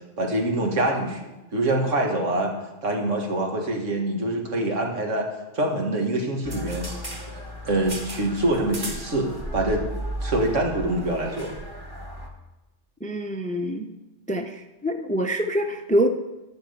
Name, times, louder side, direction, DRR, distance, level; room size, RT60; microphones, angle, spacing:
voice 1, 0.2-2.5 2.8-5.3 5.5-6.9 7.6-9.8 10.2-11.5, right 1 dB, 85° right, 1 dB, 2.1 m, -25 dB
sound 1, 6.4-12.3, equal, 20° right, 1.3 m, -35 dB
voice 2, 13.0-13.9 14.3-16.1, right 1 dB, 10° left, 6 dB, 0.5 m, -25 dB
11.5 x 6.3 x 6.7 m, 1.0 s
omnidirectional pair, 1.2 m